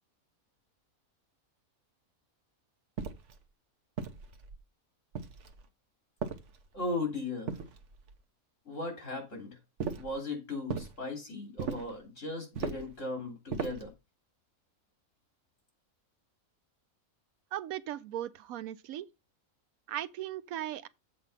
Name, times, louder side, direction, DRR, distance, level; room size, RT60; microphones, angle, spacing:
sound 1, 3.0-3.4 4.0-4.6 5.1-5.7 6.2-6.9 7.5-8.2 9.8-10.2 10.7-11.0 11.6-12.0 12.5-13.0 13.5-13.9, right 5 dB, 60° right, 1.2 m, -38 dB
voice 1, 6.7-7.6 8.7-9.6 10.0-13.9, left 2 dB, 60° left, 3.7 m, -37 dB
voice 2, 17.5-19.1 19.9-20.9, right 12 dB, 85° right, 1.0 m, -37 dB
7.6 x 4.5 x 5.5 m
omnidirectional pair, 1.5 m